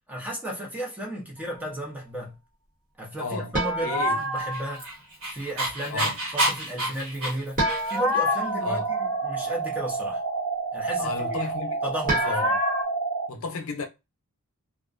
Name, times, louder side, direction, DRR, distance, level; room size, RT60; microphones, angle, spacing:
voice 1, 0.1-2.4 3.0-4.9 5.3-7.6 7.9-10.2 10.7-11.5 11.8-12.6, right 1 dB, 5° right, 0.6 m, -34 dB
voice 2, 3.2-3.5 3.8-4.2 5.9-6.2 8.6-8.9 11.0-11.8 12.2-12.5 13.3-13.9, left 3 dB, 65° left, 0.6 m, -32 dB
sound 1, 3.5-4.9 7.6-9.5 12.1-12.8, left 1 dB, 40° right, 1.0 m, -27 dB
Dog, 4.3-8.2, right 1 dB, 65° right, 1.3 m, -29 dB
sound 2, 8.3-13.3, right 4 dB, 80° right, 0.6 m, -29 dB
2.5 x 2.1 x 2.4 m
head